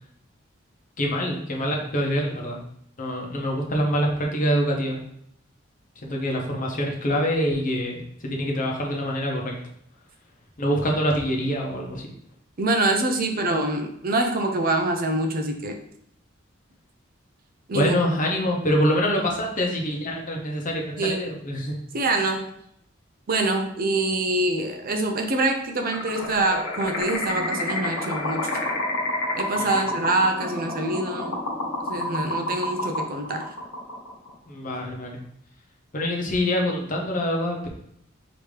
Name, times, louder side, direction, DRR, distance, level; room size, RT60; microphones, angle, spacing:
voice 1, 1.0-2.6 3.0-5.0 6.0-9.5 10.6-12.1 17.7-21.7 29.6-29.7 34.5-35.2 35.9-37.7, equal, 40° left, 0 dB, 0.9 m, -25 dB
voice 2, 12.6-15.8 17.7-17.9 21.0-21.2 21.9-22.5 23.3-28.5 29.3-31.4 31.9-33.5, right 2 dB, 45° right, 5 dB, 0.6 m, -25 dB
sound 1, 25.8-34.3, left 1 dB, 90° left, 1.3 m, -29 dB
5.1 x 2.9 x 3.2 m, 0.70 s
head